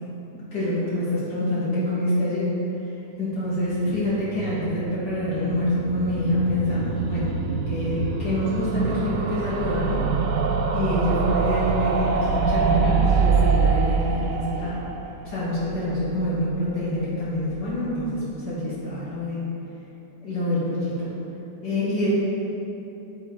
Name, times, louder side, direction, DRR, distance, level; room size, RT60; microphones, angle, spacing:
voice 1, 0.5-2.5 3.2-7.4 7.7-10.1 10.7-14.8 15.2-19.4 20.2-21.2 21.6-22.1, left 1 dB, 85° left, -10 dB, 2.7 m, -26 dB
sound 1, 3.6-16.6 16.9-17.0 17.2-17.3 17.5-17.6, right 5 dB, 65° right, 0.9 m, -25 dB
12.0 x 4.1 x 4.5 m, 2.9 s
omnidirectional pair, 1.8 m